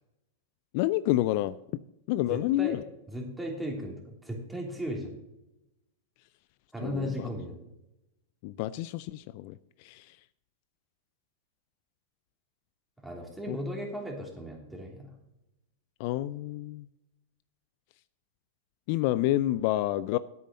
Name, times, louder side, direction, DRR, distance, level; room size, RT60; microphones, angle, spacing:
voice 1, 0.7-1.8 2.1-2.8 6.8-7.3 8.4-10.2 13.5-13.6 16.0-16.9 18.9-20.2, left 15 dB, 55° left, 17 dB, 0.3 m, -29 dB
voice 2, 2.3-2.8 3.1-5.1 6.7-7.6 13.0-15.1, equal, 5° right, 0 dB, 3.1 m, -36 dB
9.5 x 8.2 x 5.4 m, 0.90 s
hypercardioid pair, 105°, 0 cm